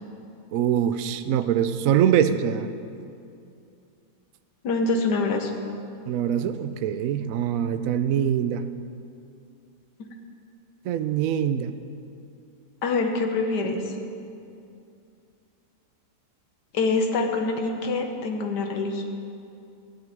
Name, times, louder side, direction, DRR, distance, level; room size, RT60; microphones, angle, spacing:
voice 1, 0.5-2.7 6.1-8.7 10.8-11.8, right 9 dB, 65° right, 11 dB, 0.9 m, -23 dB
voice 2, 4.6-5.5 12.8-14.0 16.7-19.0, left 3 dB, 90° left, 4 dB, 1.7 m, -25 dB
14.0 x 5.7 x 9.1 m, 2.5 s
omnidirectional pair, 1.8 m